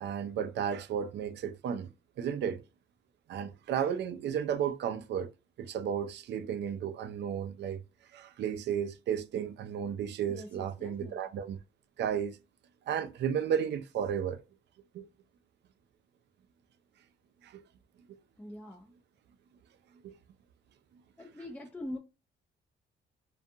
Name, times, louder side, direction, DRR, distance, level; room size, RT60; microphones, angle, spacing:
voice 1, 0.0-1.9 2.2-2.6 3.3-5.3 5.6-7.8 8.1-11.6 12.0-12.4 12.9-14.4 14.9-15.1 17.4-17.6 18.1-18.2 20.0-20.1, right 8 dB, 60° right, 0.4 m, -33 dB
voice 2, 10.3-11.2 18.4-18.9 21.2-22.0, left 1 dB, 5° left, 0.4 m, -43 dB
2.4 x 2.3 x 2.7 m
cardioid pair, 90°, 20 cm